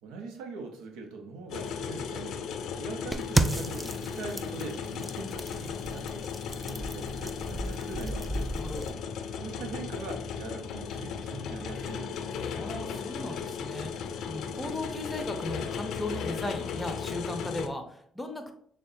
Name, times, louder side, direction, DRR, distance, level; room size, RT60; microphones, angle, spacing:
voice 1, 0.0-2.4 2.7-8.5 9.4-12.4, right 4 dB, 85° right, 3 dB, 0.7 m, -42 dB
sound 1, 1.5-17.7, left 6 dB, 75° left, 0.4 m, -36 dB
sound 2, 3.1-8.9, right 2 dB, 10° right, 0.4 m, -33 dB
voice 2, 8.5-9.0 12.5-18.5, left 1 dB, 10° left, 5 dB, 0.7 m, -37 dB
6.3 x 2.2 x 2.7 m, 0.62 s
supercardioid pair, 75°, 0 cm